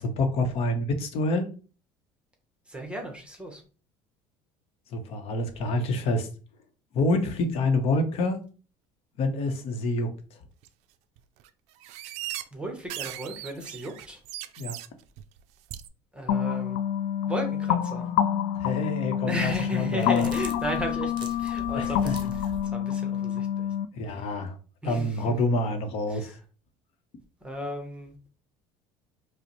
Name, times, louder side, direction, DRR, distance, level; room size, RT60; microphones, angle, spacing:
voice 1, 0.0-1.5 4.9-6.3 6.9-8.4 9.2-10.4 14.6-14.8 18.6-20.3 21.7-22.1 23.9-24.6 24.8-26.4, left 2 dB, 55° left, 7 dB, 0.8 m, -27 dB
voice 2, 2.7-3.6 12.5-14.2 16.1-16.8 17.3-18.1 19.2-23.7 24.0-24.3 24.8-25.2 26.1-26.4 27.4-28.1, equal, 10° right, 3 dB, 0.9 m, -35 dB
sound 1, 10.6-10.7 11.2-11.5 11.8-12.5 12.8-14.9 15.2-15.4 15.7-15.9, right 13 dB, 65° right, 0.4 m, -38 dB
sound 2, 16.3-23.9, left 10 dB, 80° left, 0.4 m, -27 dB
sound 3, 19.8-22.7, right 3 dB, 40° right, 0.7 m, -42 dB
4.9 x 2.1 x 2.9 m, 0.38 s
supercardioid pair, 105°, 12 cm